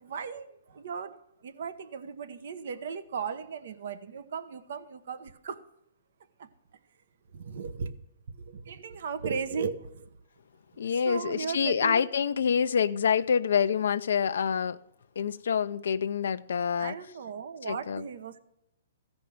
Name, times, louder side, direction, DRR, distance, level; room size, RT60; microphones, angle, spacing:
voice 1, 0.1-0.5 0.8-1.1 1.4-5.6 7.5-7.9 8.7-9.8 11.0-12.1 16.8-18.4, right 6 dB, 65° right, 1.0 m, -36 dB
voice 2, 10.8-14.8 15.2-16.9 17.6-18.0, left 7 dB, 75° left, 0.5 m, -27 dB
15.5 x 5.3 x 7.6 m
hypercardioid pair, 155°, 0 cm